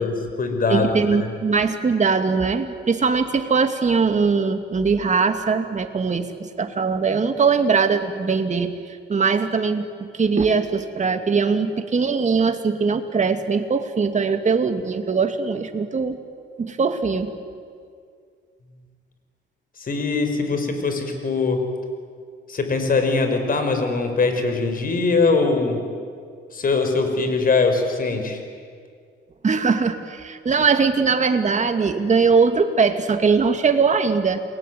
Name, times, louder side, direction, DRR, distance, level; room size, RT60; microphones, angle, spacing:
voice 1, 0.0-1.3 19.8-21.6 22.5-25.8 26.5-28.4, left 4 dB, 45° left, 6 dB, 5.3 m, -22 dB
voice 2, 0.7-16.2 16.6-17.3 29.4-34.4, right 5 dB, 35° right, 7 dB, 2.5 m, -21 dB
29.0 x 21.5 x 9.5 m, 2.1 s
cardioid pair, 90°, 20 cm